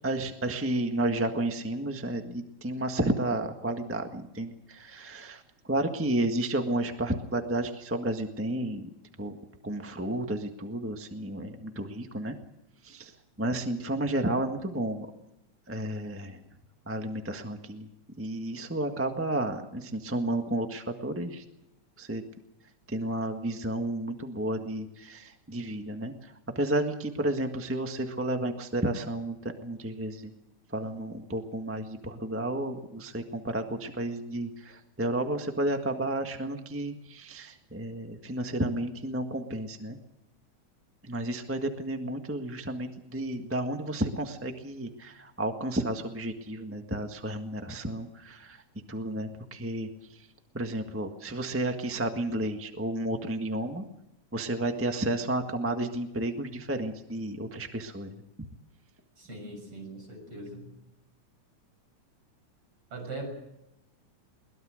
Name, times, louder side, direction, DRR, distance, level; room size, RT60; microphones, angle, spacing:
voice 1, 0.0-8.9 9.2-9.4 9.6-12.3 12.8-15.1 15.7-16.4 16.9-17.9 18.2-21.4 22.0-22.2 22.9-30.3 30.7-40.0 41.0-48.6 48.9-50.3 50.5-53.8 54.3-58.1, right 1 dB, 10° right, 5 dB, 0.7 m, -32 dB
voice 2, 59.2-60.7 62.9-63.3, right 2 dB, 50° right, 3 dB, 7.7 m, -40 dB
22.0 x 21.0 x 6.5 m, 0.87 s
omnidirectional pair, 3.4 m